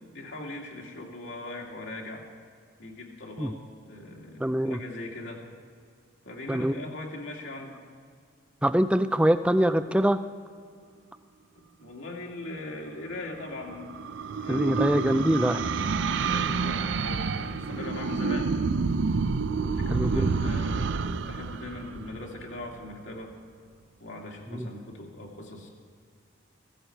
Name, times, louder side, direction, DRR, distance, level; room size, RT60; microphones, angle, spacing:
voice 1, 0.0-2.2 2.8-3.6 3.8-5.4 6.2-7.8 11.8-14.0 14.4-18.5 19.5-23.3 24.0-25.7, left 2 dB, 70° left, 0 dB, 2.4 m, -40 dB
voice 2, 4.4-4.8 6.5-6.7 8.6-10.2 14.5-15.6 19.9-20.3 24.5-24.7, right 1 dB, 5° right, 11 dB, 0.4 m, -24 dB
sound 1, 13.2-22.7, right 4 dB, 65° right, 0.5 m, -29 dB
16.0 x 15.5 x 4.5 m, 2.1 s
head